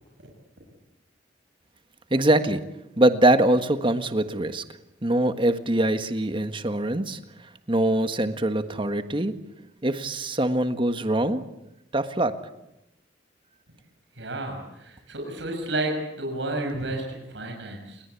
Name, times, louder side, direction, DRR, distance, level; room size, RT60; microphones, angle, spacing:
voice 1, 2.1-2.6 3.0-4.6 5.0-7.2 7.7-9.3 9.8-11.4 11.9-12.4, right 1 dB, 25° right, 9 dB, 1.5 m, -23 dB
voice 2, 14.2-18.0, right 1 dB, 75° right, 2 dB, 6.7 m, -31 dB
29.0 x 21.0 x 8.4 m, 0.91 s
head